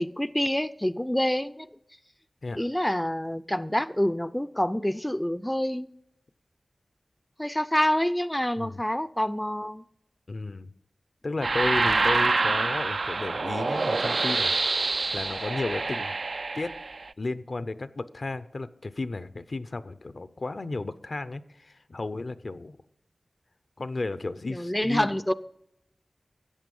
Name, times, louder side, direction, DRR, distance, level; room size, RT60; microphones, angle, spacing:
voice 1, 0.0-1.7 2.6-5.9 7.4-9.8 24.5-25.3, equal, 10° left, 0.4 m, -27 dB
voice 2, 10.3-10.7 11.2-14.5 15.1-16.1 16.5-16.8 17.2-22.8 23.8-25.3, left 3 dB, 60° left, 0.6 m, -33 dB
sound 1, 11.4-17.1, right 3 dB, 75° right, 0.4 m, -26 dB
14.0 x 8.3 x 5.4 m
wide cardioid pair, 60°, 0 cm